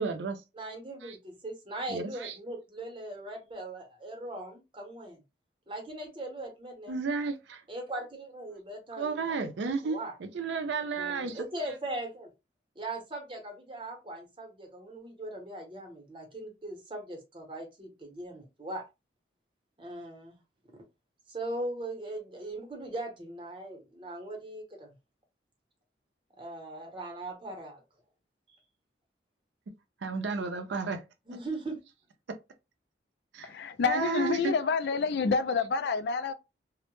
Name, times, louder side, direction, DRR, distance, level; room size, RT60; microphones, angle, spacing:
voice 1, 0.0-0.4 1.0-1.2 1.9-2.4 6.9-7.6 9.0-11.8 30.0-31.0 31.3-31.4 33.3-33.5 33.8-34.5, right 4 dB, 75° right, 0.4 m, -33 dB
voice 2, 0.5-5.2 5.7-7.0 7.7-9.3 9.8-10.1 11.0-12.3 12.8-18.8 19.8-20.4 21.3-24.9 26.4-27.8 28.5-28.6 31.3-31.8, right 1 dB, 30° right, 0.7 m, -39 dB
voice 3, 33.4-36.3, left 5 dB, 65° left, 0.3 m, -28 dB
2.1 x 2.0 x 2.9 m
head